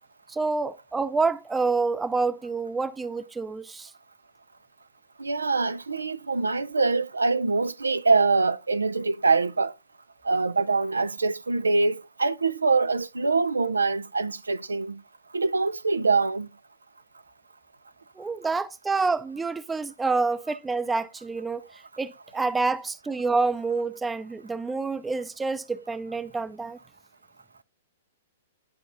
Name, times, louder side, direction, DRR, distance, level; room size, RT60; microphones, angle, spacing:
voice 1, 0.3-3.9 18.2-26.8, right 4 dB, 10° right, 0.5 m, -28 dB
voice 2, 5.2-9.7 10.2-15.0 15.3-16.5, right 3 dB, 85° right, 0.4 m, -24 dB
10.0 x 4.8 x 2.5 m
hypercardioid pair, 110°, 0 cm